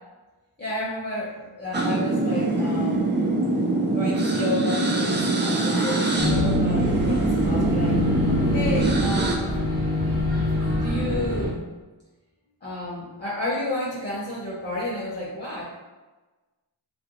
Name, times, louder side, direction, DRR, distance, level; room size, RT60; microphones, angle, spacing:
voice 1, 0.6-3.2 3.9-8.0 8.5-9.7 10.8-11.6 12.6-15.6, left 1 dB, 20° left, -6 dB, 0.7 m, -31 dB
sound 1, 1.7-9.4, right 2 dB, 25° right, 0.4 m, -23 dB
sound 2, 6.2-11.5, left 2 dB, 45° right, 1.1 m, -25 dB
3.0 x 2.6 x 3.0 m, 1.2 s
wide cardioid pair, 80°, 49 cm